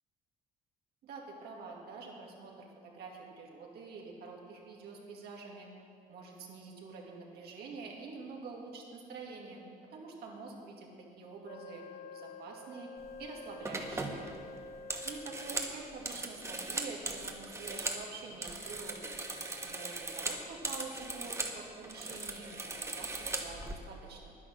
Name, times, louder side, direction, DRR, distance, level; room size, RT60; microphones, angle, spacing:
voice 1, 1.0-5.7 6.1-10.9 11.2-12.9 13.2-14.3 15.0-19.2 19.6-24.3, right 4 dB, 70° right, -1 dB, 2.2 m, -47 dB
Wind instrument woodwind instrument, 11.4-16.0, left 3 dB, 55° left, 0.7 m, -49 dB
sound 1, 13.0-13.2 13.6-18.0 18.3-21.6 21.8-23.7, right 2 dB, 15° right, 1.1 m, -39 dB
10.0 x 10.0 x 6.5 m, 2.6 s
cardioid pair, 110°, 17 cm